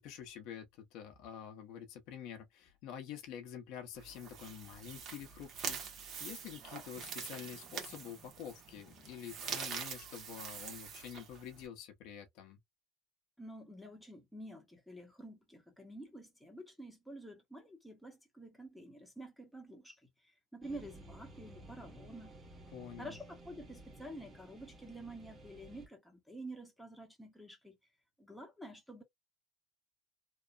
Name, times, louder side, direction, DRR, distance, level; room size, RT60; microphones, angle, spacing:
voice 1, 0.0-12.6 22.7-23.2, left 9 dB, 70° left, 0.7 m, -48 dB
sound 1, 3.9-11.7, right 7 dB, 45° right, 0.9 m, -45 dB
voice 2, 13.4-22.4 23.0-27.8 28.2-29.0, right 1 dB, ahead, 0.9 m, -49 dB
sound 2, 20.6-25.9, right 1 dB, 20° right, 1.0 m, -54 dB
2.9 x 2.1 x 2.3 m
cardioid pair, 125°, 0 cm